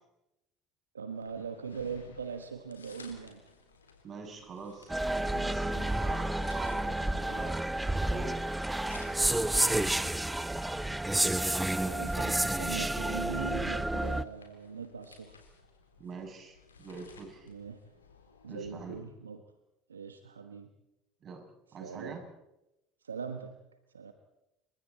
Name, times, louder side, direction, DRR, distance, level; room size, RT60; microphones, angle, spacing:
voice 1, 0.9-3.4 11.8-15.4 17.5-17.8 18.4-19.4 19.9-20.7 21.8-22.2 23.0-23.6 23.9-24.1, right 6 dB, 85° right, 8 dB, 1.3 m, -41 dB
sound 1, 1.1-19.0, left 3 dB, 85° left, 3.6 m, -56 dB
voice 2, 4.0-7.6 8.1-8.6 9.5-10.0 16.0-17.5 18.5-19.1 21.2-21.4 21.7-22.2, right 4 dB, 40° right, 3 dB, 7.7 m, -44 dB
sound 2, 4.9-14.2, right 1 dB, 10° right, 0.9 m, -30 dB
28.5 x 24.5 x 4.3 m, 0.89 s
figure-of-eight pair, 65°, 0 cm